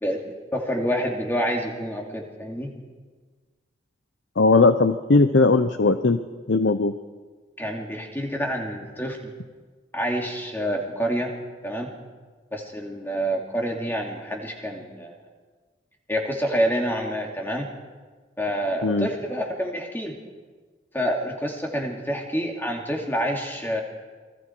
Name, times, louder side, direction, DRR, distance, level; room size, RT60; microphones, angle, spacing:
voice 1, 0.5-2.7 7.6-9.2 9.9-11.3 11.6-11.9 12.5-15.1 16.1-17.7 18.4-20.2 20.9-23.8, equal, 10° left, 0 dB, 2.6 m, -27 dB
voice 2, 4.4-6.2 6.5-6.9 18.8-19.1, left 3 dB, 75° left, 10 dB, 0.7 m, -18 dB
28.0 x 21.0 x 4.6 m, 1.4 s
head